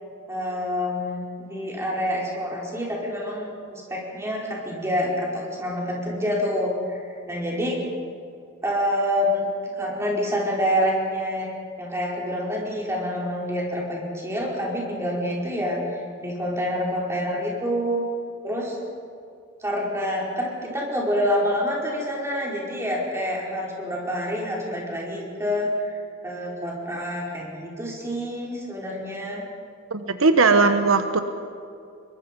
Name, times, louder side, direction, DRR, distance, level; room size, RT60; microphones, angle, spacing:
voice 1, 0.3-7.8 8.6-9.5 9.7-11.5 11.8-15.8 16.2-18.1 18.4-18.8 19.6-29.4, equal, 15° right, -3 dB, 5.0 m, -27 dB
voice 2, 29.9-31.2, right 4 dB, 80° right, 8 dB, 1.1 m, -18 dB
25.0 x 22.5 x 5.4 m, 2.4 s
head